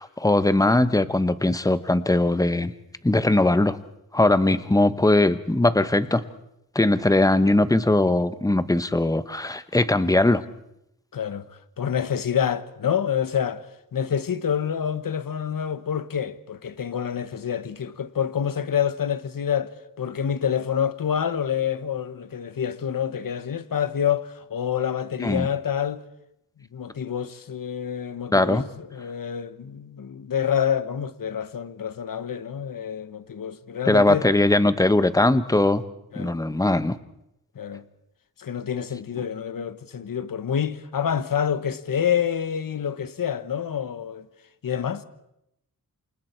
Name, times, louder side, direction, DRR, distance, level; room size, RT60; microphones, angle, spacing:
voice 1, 0.0-2.7 3.0-3.8 4.1-6.2 6.7-10.4 25.2-25.5 28.3-28.6 33.9-35.8 36.2-37.0, left 2 dB, 10° left, 1.0 m, -20 dB
voice 2, 11.1-26.0 26.6-34.3 36.1-36.4 37.5-37.8 38.4-44.3 44.6-45.0, left 8 dB, 70° left, 1.2 m, -27 dB
28.5 x 26.0 x 4.5 m
wide cardioid pair, 105°, 35 cm